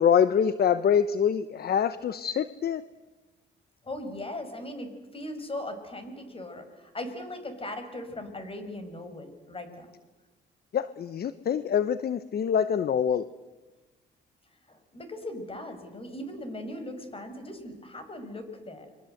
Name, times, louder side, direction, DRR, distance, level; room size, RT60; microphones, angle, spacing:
voice 1, 0.0-2.8 10.7-13.2, left 8 dB, 50° left, 14 dB, 1.0 m, -25 dB
voice 2, 3.8-9.9 14.7-18.9, left 1 dB, 30° left, 8 dB, 5.7 m, -39 dB
30.0 x 22.5 x 7.9 m, 1.1 s
cardioid pair, 90°, 20 cm